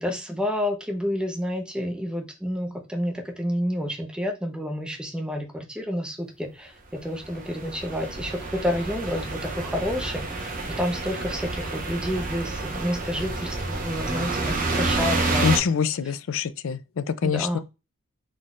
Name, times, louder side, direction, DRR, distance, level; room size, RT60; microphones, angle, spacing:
voice 1, 0.0-15.6 17.2-17.6, equal, 5° right, 0.7 m, -29 dB
sound 1, 6.9-7.0 7.2-15.6, right 2 dB, 40° right, 0.9 m, -29 dB
voice 2, 15.4-17.6, left 7 dB, 65° left, 0.4 m, -25 dB
4.0 x 3.8 x 2.4 m
head